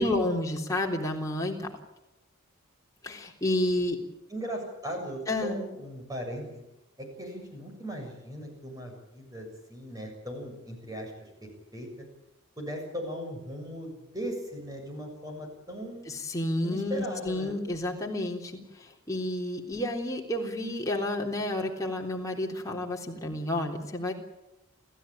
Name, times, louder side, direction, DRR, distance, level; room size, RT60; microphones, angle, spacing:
voice 1, 0.0-1.6 3.0-4.0 5.3-5.6 16.1-18.6 19.1-24.1, left 1 dB, 15° left, 0 dB, 3.6 m, -30 dB
voice 2, 4.3-6.6 7.0-11.1 11.7-11.9 12.6-16.1 16.6-17.6, equal, 15° right, 2 dB, 7.2 m, -38 dB
29.5 x 14.5 x 9.1 m, 0.91 s
head